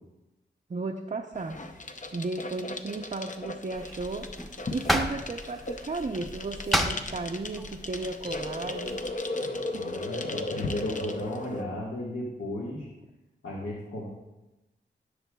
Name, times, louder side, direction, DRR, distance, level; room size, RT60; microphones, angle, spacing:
voice 1, 0.7-1.6 2.1-4.3 4.7-9.0 9.6-9.9, right 3 dB, 40° right, 1 dB, 0.6 m, -34 dB
sound 1, 1.3-11.6, left 2 dB, 40° left, 0.7 m, -36 dB
sound 2, 3.7-9.1, equal, ahead, 0.8 m, -33 dB
voice 2, 9.4-12.9 13.4-14.1, left 1 dB, 90° left, -5 dB, 1.6 m, -35 dB
18.0 x 6.5 x 2.3 m, 1.0 s
wide cardioid pair, 85°, 20 cm